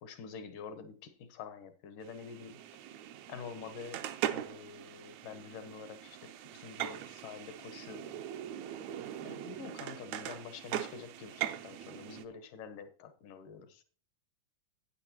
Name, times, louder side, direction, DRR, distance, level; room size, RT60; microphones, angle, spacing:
voice 1, 0.0-2.6 3.3-4.0 4.3-8.2 9.2-13.8, left 6 dB, 75° left, 10 dB, 2.7 m, -47 dB
sound 1, 2.0-12.3, right 11 dB, 75° right, 1.7 m, -41 dB
13.0 x 9.4 x 2.9 m, 0.39 s
omnidirectional pair, 3.8 m